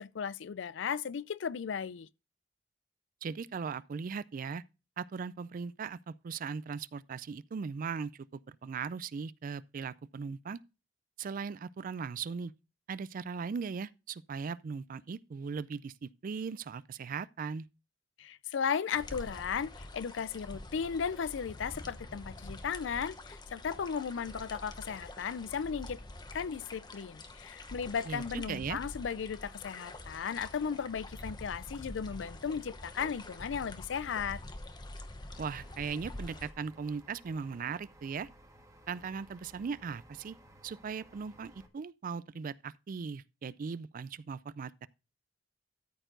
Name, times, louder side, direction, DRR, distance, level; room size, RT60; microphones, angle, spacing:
voice 1, 0.0-2.1 18.2-26.0 26.3-34.4, left 6 dB, 70° left, 0.4 m, -36 dB
voice 2, 3.2-4.6 5.0-10.6 11.2-12.5 12.9-17.7 28.1-28.8 35.4-38.3 38.9-40.4 40.6-44.9, right 5 dB, 45° right, 0.4 m, -38 dB
sound 1, 18.9-36.5, left 1 dB, 25° left, 0.9 m, -46 dB
sound 2, 35.3-41.7, right 1 dB, 20° right, 1.4 m, -58 dB
13.5 x 4.5 x 3.9 m
head